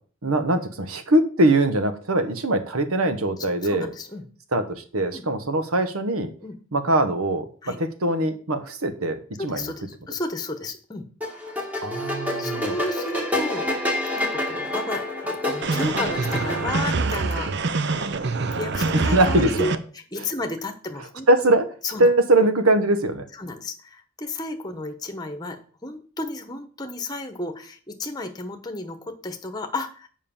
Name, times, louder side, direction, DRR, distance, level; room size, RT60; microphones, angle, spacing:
voice 1, 0.2-3.9 4.5-6.3 6.7-7.4 7.8-9.2 9.4-9.7 11.8-12.8 19.1-19.8 21.3-21.6 22.0-23.2, right 1 dB, 80° right, 9 dB, 1.3 m, -22 dB
voice 2, 3.4-4.3 5.1-5.2 6.4-6.6 7.6-7.8 9.4-11.1 12.4-17.5 17.9-21.5 21.8-22.1 23.3-30.1, left 2 dB, 20° left, 7 dB, 1.1 m, -33 dB
sound 1, 11.2-16.9, left 1 dB, 5° right, 1.5 m, -28 dB
sound 2, 15.6-19.8, right 3 dB, 50° right, 0.6 m, -25 dB
7.6 x 5.3 x 7.2 m, 0.42 s
head